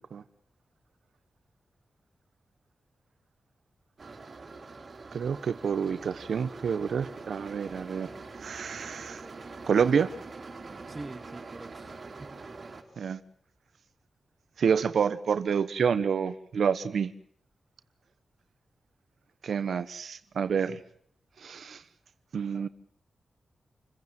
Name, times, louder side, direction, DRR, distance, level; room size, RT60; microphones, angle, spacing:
sound 1, 4.0-12.8, right 3 dB, 45° right, 3.8 m, -44 dB
voice 1, 5.1-8.1 8.4-9.2 9.7-10.1 13.0-13.2 14.6-17.1 19.4-20.8 21.4-21.8 22.3-22.7, right 6 dB, 75° right, 1.1 m, -28 dB
voice 2, 10.9-12.4 22.5-22.7, right 2 dB, 25° right, 1.3 m, -44 dB
28.0 x 16.0 x 9.2 m
wide cardioid pair, 135°, 0 cm